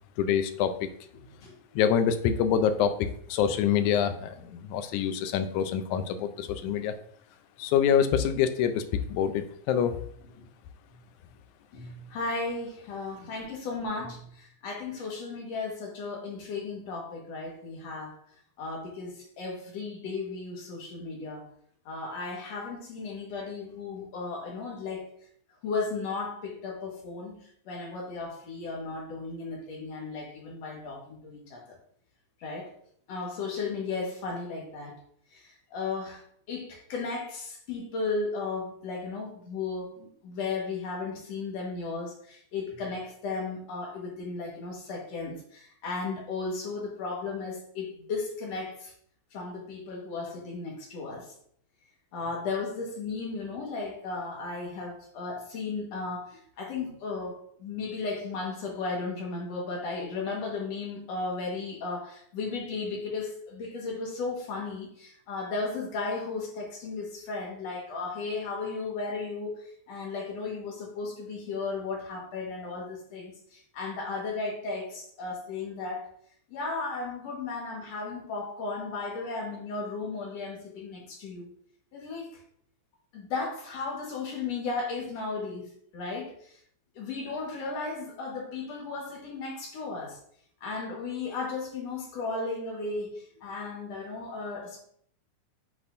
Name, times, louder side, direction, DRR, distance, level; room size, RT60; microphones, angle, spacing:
voice 1, 0.2-0.9 1.8-7.0 7.6-10.0, left 8 dB, 85° left, 9 dB, 2.1 m, -26 dB
voice 2, 11.7-18.2 18.6-21.4 21.9-25.1 25.6-27.4 27.7-31.8 32.4-32.8 33.1-35.0 35.3-36.2 36.5-48.9 49.3-51.3 52.1-76.1 76.5-81.5 81.9-82.3 83.1-86.5 87.0-90.2 90.6-94.8, left 4 dB, 65° left, 0 dB, 2.6 m, -35 dB
8.4 x 5.4 x 2.6 m, 0.63 s
omnidirectional pair, 3.4 m